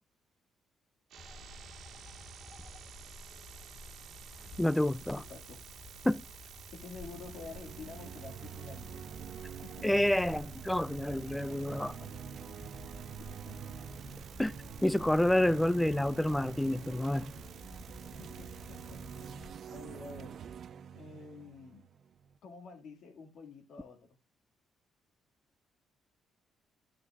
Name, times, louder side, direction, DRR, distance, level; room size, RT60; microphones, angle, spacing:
sound 1, 1.1-19.3, right 9 dB, 75° right, 1.5 m, -54 dB
sound 2, 1.2-19.5, left 2 dB, 25° left, 1.1 m, -52 dB
voice 1, 4.6-5.2 6.0-6.2 9.8-11.9 14.4-14.5 14.8-17.3, left 1 dB, 5° left, 0.4 m, -28 dB
voice 2, 5.2-5.6 6.7-9.2 9.6-9.9 11.8-12.1 13.2-13.7 18.2-19.0 19.7-20.4 20.9-21.9 22.4-24.1, left 4 dB, 70° left, 2.1 m, -49 dB
sound 3, 6.9-22.4, right 8 dB, 55° right, 0.5 m, -47 dB
11.5 x 9.7 x 2.5 m
cardioid pair, 105°, 0 cm